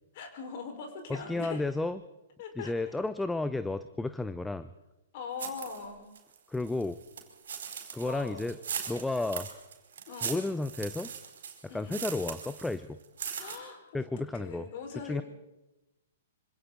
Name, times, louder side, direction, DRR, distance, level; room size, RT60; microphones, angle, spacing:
voice 1, 0.1-1.6 2.4-2.7 5.1-6.0 8.0-8.4 10.1-10.4 11.7-12.0 13.3-15.2, left 5 dB, 40° left, 4 dB, 4.8 m, -41 dB
voice 2, 1.1-2.0 2.6-4.7 6.5-7.0 7.9-8.6 8.9-9.5 10.2-11.1 11.7-13.0 13.9-14.7 15.0-15.2, left 2 dB, 5° left, 13 dB, 0.6 m, -32 dB
sound 1, 5.4-5.8 6.1-12.7 13.0-13.6, right 7 dB, 55° right, 4.7 m, -39 dB
26.0 x 26.0 x 4.0 m, 1.0 s
figure-of-eight pair, 110°, 0 cm